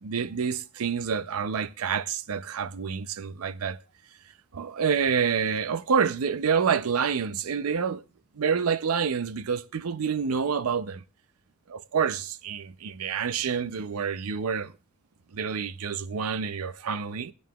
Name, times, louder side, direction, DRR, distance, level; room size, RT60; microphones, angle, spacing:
voice 1, 0.0-3.8 4.5-8.0 8.3-11.0 11.7-14.7 15.3-17.3, right 6 dB, 90° right, 0.5 m, -28 dB
18.0 x 9.2 x 2.3 m
head